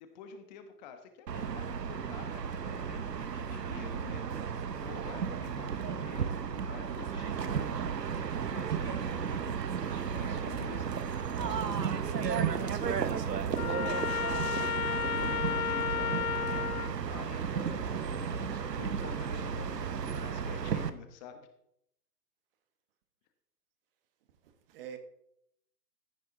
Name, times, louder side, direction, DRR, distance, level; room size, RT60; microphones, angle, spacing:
voice 1, 0.1-4.2 4.8-10.9 11.4-14.7 15.1-19.8 20.2-21.5, left 7 dB, 25° left, 7 dB, 1.2 m, -49 dB
sound 1, 1.3-20.9, right 7 dB, 75° right, 1.2 m, -34 dB
Trumpet, 13.6-16.9, left 8 dB, 60° left, 1.0 m, -33 dB
voice 2, 24.3-25.0, right 9 dB, 35° right, 8 dB, 1.6 m, -46 dB
14.5 x 9.7 x 3.9 m, 0.74 s
hypercardioid pair, 135°, 50 cm